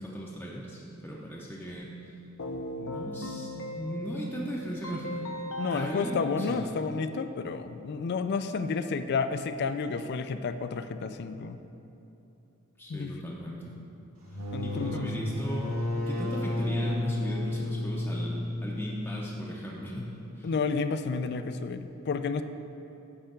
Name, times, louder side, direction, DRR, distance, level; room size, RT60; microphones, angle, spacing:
voice 1, 0.0-2.1 2.8-5.2 5.7-6.7 12.8-13.7 14.6-20.5, equal, 10° left, -5 dB, 0.6 m, -37 dB
Keyboard (musical), 2.4-7.4, left 1 dB, 80° left, 0.8 m, -39 dB
voice 2, 5.6-11.6 12.9-13.1 14.5-15.1 20.4-22.4, left 4 dB, 50° left, 10 dB, 0.4 m, -31 dB
sound 1, 14.2-19.7, left 1 dB, 75° right, 1.8 m, -32 dB
9.9 x 3.4 x 6.6 m, 2.9 s
head